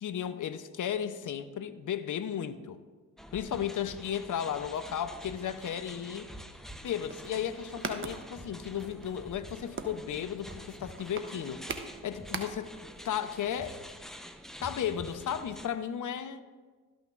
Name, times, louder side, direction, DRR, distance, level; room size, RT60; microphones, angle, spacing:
voice 1, 0.0-2.8 3.3-6.3 6.8-11.6 12.0-12.7 13.0-13.8 14.6-16.4, left 9 dB, 45° left, 0.7 m, -34 dB
sound 1, 3.2-15.7, equal, ahead, 0.7 m, -47 dB
sound 2, 7.0-12.8 13.1-13.2 13.4-13.6, right 4 dB, 30° right, 0.9 m, -41 dB
13.0 x 6.1 x 2.5 m
hypercardioid pair, 45°, 43 cm